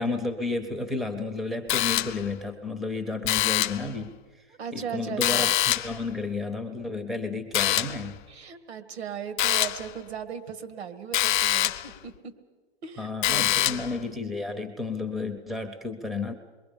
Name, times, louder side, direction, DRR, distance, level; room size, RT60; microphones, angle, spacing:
voice 1, 0.0-4.4 4.7-5.5 5.8-8.2 13.0-16.3, left 3 dB, ahead, 8 dB, 0.5 m, -32 dB
sound 1, 1.7-2.4 3.2-3.9 5.2-6.0 7.5-8.1 9.4-9.9 11.1-11.9 13.2-14.0, left 14 dB, 50° left, 0.6 m, -25 dB
voice 2, 4.6-5.5 8.3-12.3 12.8-13.8, right 7 dB, 75° right, 9 dB, 2.0 m, -37 dB
27.5 x 22.5 x 5.2 m, 1.5 s
hypercardioid pair, 155°, 32 cm